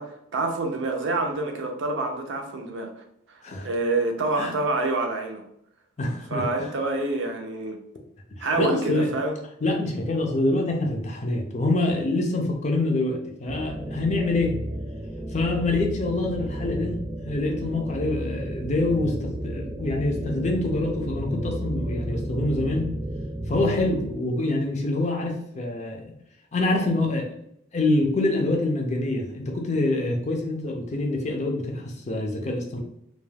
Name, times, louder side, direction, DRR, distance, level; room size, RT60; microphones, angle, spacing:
voice 1, 0.0-2.9 3.6-5.4 6.3-7.8 8.4-9.3, right 2 dB, 75° right, 3 dB, 0.5 m, -27 dB
voice 2, 6.0-6.7 8.4-9.1 9.6-14.5 15.3-17.0 17.2-22.9 23.5-26.1 26.5-27.3 27.7-32.8, left 2 dB, 35° left, 1 dB, 0.5 m, -26 dB
sound 1, 13.5-24.1, right 1 dB, 25° right, 0.3 m, -32 dB
2.3 x 2.3 x 3.2 m, 0.74 s
head